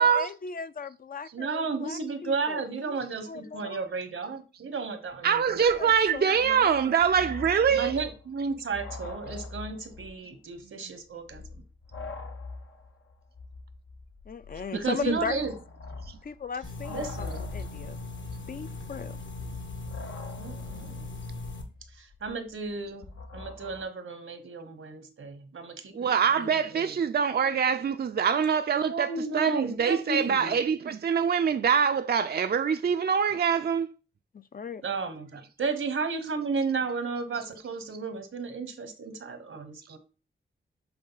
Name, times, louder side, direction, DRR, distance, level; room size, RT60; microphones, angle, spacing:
voice 1, 0.0-2.6 3.3-3.8 5.6-6.9 14.3-15.4 16.2-18.0 18.5-19.2 34.3-34.8, left 5 dB, 45° left, 0.4 m, -37 dB
voice 2, 1.3-5.8 7.7-11.4 14.5-15.5 16.9-17.5 20.4-21.1 21.9-23.1 23.3-27.0 28.8-30.5 34.8-40.0, right 4 dB, 80° right, 1.1 m, -33 dB
sound 1, 5.1-5.2 5.4-10.3 10.5-10.6 11.2-23.8, left 3 dB, 80° left, 0.9 m, -43 dB
voice 3, 5.2-7.9 14.9-15.2 16.0-16.2 25.9-29.1 29.3-33.9, right 7 dB, 50° right, 0.4 m, -24 dB
sound 2, 16.6-21.6, left 3 dB, 65° left, 1.3 m, -39 dB
7.6 x 3.6 x 4.0 m
wide cardioid pair, 65°, 21 cm